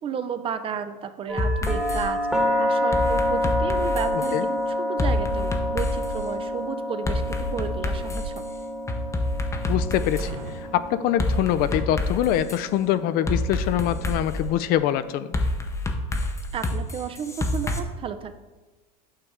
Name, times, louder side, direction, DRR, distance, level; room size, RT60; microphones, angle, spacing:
voice 1, 0.0-8.4 16.5-18.3, right 7 dB, 25° right, 9 dB, 0.5 m, -33 dB
sound 1, 1.3-15.2, left 1 dB, 5° right, 1.2 m, -29 dB
sound 2, 1.4-2.0 2.9-4.4 5.0-6.2 7.1-8.4 8.9-10.3 11.2-12.6 13.3-14.4 15.3-17.8, left 2 dB, 15° left, 0.7 m, -27 dB
voice 2, 9.6-10.3 10.7-15.3, left 12 dB, 50° left, 13 dB, 0.4 m, -24 dB
Boom, 10.2-11.9 12.8-13.0, right 2 dB, 70° right, 1.2 m, -42 dB
8.9 x 3.5 x 6.5 m, 1.2 s
supercardioid pair, 135°, 20 cm